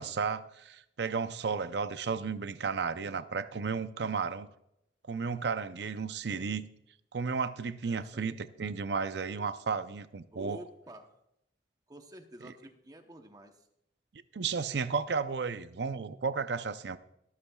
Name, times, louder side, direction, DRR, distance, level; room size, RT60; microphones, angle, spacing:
voice 1, 0.0-4.5 5.1-6.7 7.1-10.6 14.3-17.0, right 5 dB, 65° right, 0.6 m, -33 dB
voice 2, 7.8-8.4 10.3-11.2 11.9-13.7, right 1 dB, 20° right, 0.9 m, -49 dB
24.0 x 8.5 x 2.3 m
head